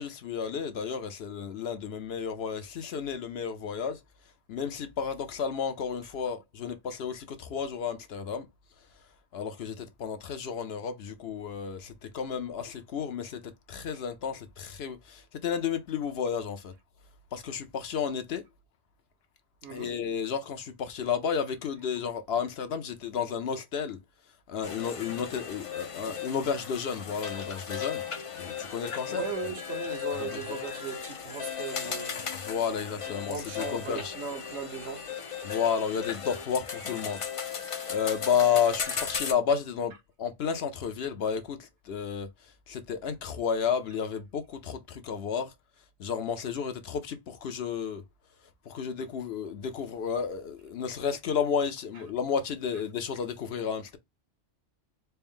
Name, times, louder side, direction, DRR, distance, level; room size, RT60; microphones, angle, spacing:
voice 1, 0.0-4.0 4.5-8.5 9.3-16.7 17.3-18.4 19.7-24.0 24.5-28.0 28.4-29.2 30.2-30.6 32.4-34.1 35.4-37.6 37.9-42.3 42.7-45.5 46.0-48.0 48.7-54.0, left 7 dB, 65° left, 0.8 m, -32 dB
voice 2, 19.6-19.9 29.1-32.3 33.2-35.1 38.9-39.1, right 6 dB, 70° right, 1.2 m, -38 dB
sound 1, 24.6-39.3, left 7 dB, 45° left, 0.4 m, -36 dB
4.3 x 2.0 x 3.5 m
omnidirectional pair, 1.2 m